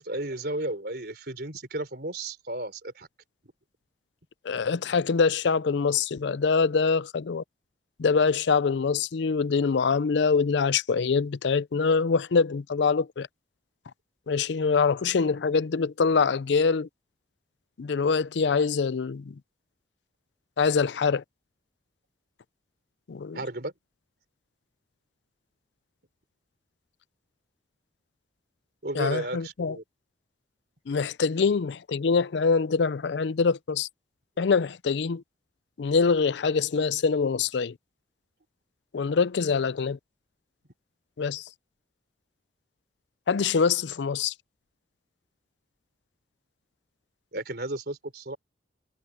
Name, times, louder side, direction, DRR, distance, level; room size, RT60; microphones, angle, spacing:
voice 1, 0.0-3.1 23.3-23.7 28.8-29.8 47.3-48.4, right 1 dB, 60° right, 3.9 m, -33 dB
voice 2, 4.4-7.4 8.0-13.3 14.3-16.9 17.8-19.3 20.6-21.2 23.1-23.4 28.9-29.8 30.9-33.9 34.4-35.2 35.8-37.7 38.9-40.0 41.2-41.5 43.3-44.3, left 5 dB, 70° left, 0.5 m, -24 dB
head